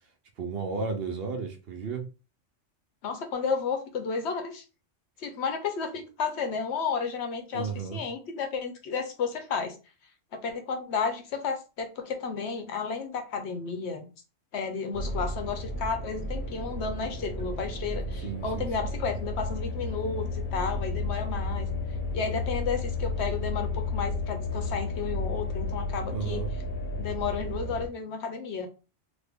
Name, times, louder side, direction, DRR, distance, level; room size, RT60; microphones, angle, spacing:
voice 1, 0.4-2.1 7.5-8.0 18.2-18.9 26.1-26.5, right 5 dB, 60° right, 0.7 m, -33 dB
voice 2, 3.0-4.6 5.2-9.8 10.3-14.1 14.5-21.7 22.1-26.4 27.0-28.7, left 5 dB, 70° left, 0.9 m, -32 dB
sound 1, 14.9-27.9, left 2 dB, 45° left, 0.9 m, -32 dB
3.4 x 2.1 x 3.4 m
omnidirectional pair, 1.3 m